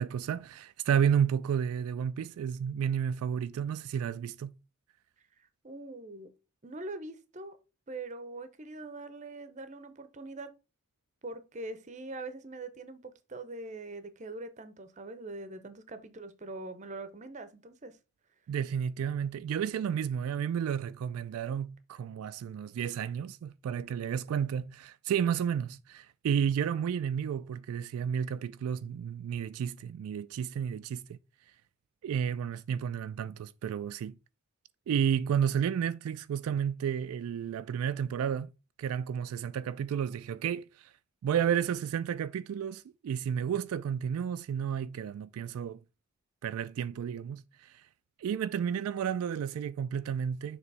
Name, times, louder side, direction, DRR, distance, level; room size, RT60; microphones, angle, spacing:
voice 1, 0.0-4.5 18.5-31.2 32.0-34.1 34.9-38.5 38.8-40.9 41.2-45.8 46.4-47.8 48.2-50.6, right 8 dB, 85° right, 0.3 m, -32 dB
voice 2, 5.4-6.3 6.6-7.6 7.9-10.5 11.2-18.0, right 2 dB, 35° right, 0.6 m, -43 dB
6.8 x 3.0 x 4.6 m
head